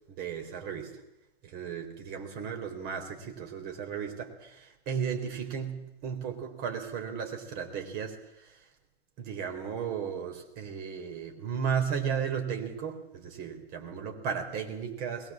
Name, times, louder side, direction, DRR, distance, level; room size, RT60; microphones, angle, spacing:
voice 1, 0.1-1.0 1.4-8.7 9.2-15.3, right 7 dB, 30° right, 4 dB, 3.8 m, -35 dB
21.5 x 20.0 x 7.4 m, 0.86 s
figure-of-eight pair, 120°, 31 cm